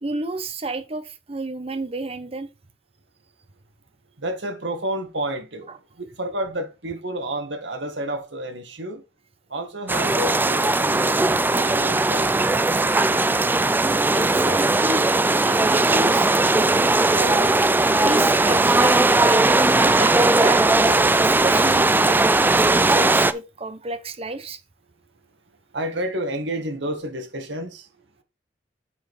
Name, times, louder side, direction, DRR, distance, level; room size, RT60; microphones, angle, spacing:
voice 1, 0.0-2.5 14.0-15.1 15.4-16.4 17.1-17.5 17.9-19.7 20.0-24.6, right 2 dB, 35° right, 0.8 m, -31 dB
voice 2, 4.2-9.0 9.5-11.2 11.5-12.6 25.7-28.1, right 1 dB, 80° right, 1.8 m, -30 dB
sound 1, 9.9-23.3, right 2 dB, 10° right, 0.3 m, -18 dB
7.7 x 4.5 x 4.8 m
head